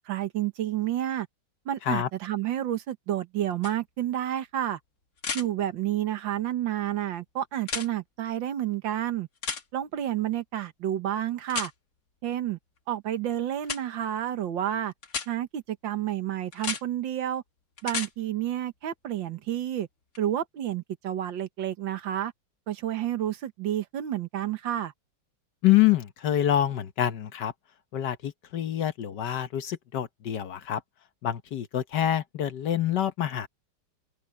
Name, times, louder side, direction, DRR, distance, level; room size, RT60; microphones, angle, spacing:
voice 1, 0.1-1.3 1.7-4.8 5.3-9.3 9.7-11.7 12.2-12.6 12.9-14.9 15.3-17.4 17.8-19.9 20.2-22.3 22.7-24.9, right 11 dB, 85° right, 1.9 m, -30 dB
sound 1, 3.6-3.7 5.2-5.5 7.6-7.9 9.4-9.6 11.5-11.7 13.6-13.8 15.0-15.3 16.5-16.8 17.8-18.1 20.2-20.3, left 5 dB, 50° left, 2.0 m, -32 dB
voice 2, 25.6-27.5 27.9-30.8 31.2-33.5, left 12 dB, 65° left, 1.5 m, -26 dB
open air
omnidirectional pair, 2.0 m